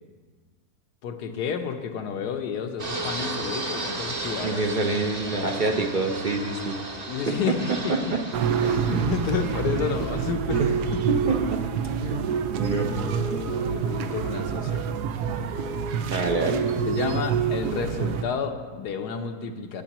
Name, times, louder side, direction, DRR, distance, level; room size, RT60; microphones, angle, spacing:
voice 1, 1.0-5.8 6.9-8.2 8.6-10.6 10.9-11.0 12.5-14.9 16.4-16.6 16.9-19.8, left 6 dB, 85° left, 6 dB, 1.4 m, -31 dB
Fixed-wing aircraft airplane, 2.8-10.3, right 2 dB, 30° right, 0.8 m, -35 dB
voice 2, 4.4-6.8 7.3-8.2 8.6-9.1 10.6-10.7 11.1-11.6 12.0-12.9 16.1-16.5, right 3 dB, 60° right, 4 dB, 0.5 m, -27 dB
sound 1, 8.3-18.2, right 7 dB, 85° right, 1.2 m, -27 dB
18.0 x 9.0 x 3.0 m, 1.5 s
omnidirectional pair, 1.7 m